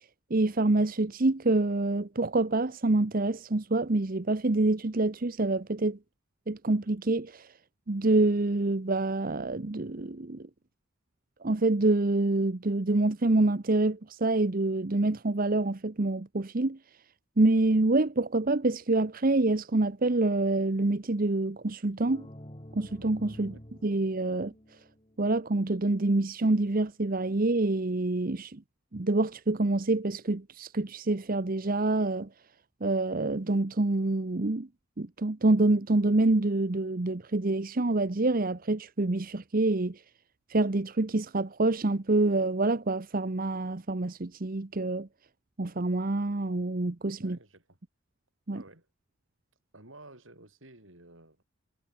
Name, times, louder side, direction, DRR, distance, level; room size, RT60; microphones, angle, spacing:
voice 1, 0.3-6.0 6.5-7.5 7.9-10.5 11.4-16.8 17.4-22.3 22.7-23.5 23.8-24.5 25.2-28.6 28.9-32.3 32.8-34.7 35.0-40.0 40.5-45.1 45.6-47.4 48.5-48.6, right 2 dB, 45° right, 0.9 m, -26 dB
sound 1, 22.1-25.7, equal, 25° left, 2.9 m, -48 dB
voice 2, 47.2-47.8 48.5-48.9 49.7-51.4, right 2 dB, 70° right, 6.6 m, -52 dB
head